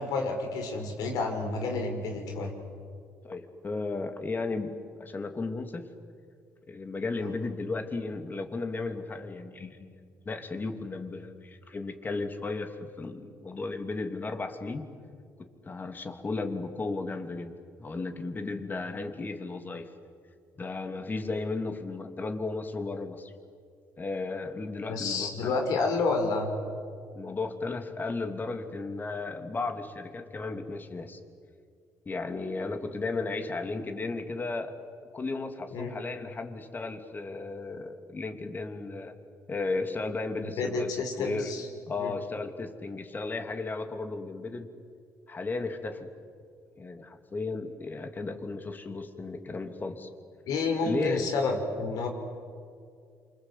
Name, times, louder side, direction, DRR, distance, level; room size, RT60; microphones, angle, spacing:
voice 1, 0.0-2.5 24.9-26.5 35.7-35.9 40.4-41.7 42.0-42.1 50.5-52.1, left 3 dB, 75° left, 4 dB, 5.5 m, -29 dB
voice 2, 3.2-5.9 6.7-14.9 15.4-19.9 20.6-23.3 24.0-25.6 27.1-31.2 32.1-34.7 35.1-39.1 39.5-41.5 41.9-44.7 45.3-46.1 46.8-50.1 50.8-51.3, left 3 dB, 30° left, 7 dB, 2.9 m, -35 dB
27.5 x 26.0 x 8.3 m, 2.2 s
cardioid pair, 85°, 6 cm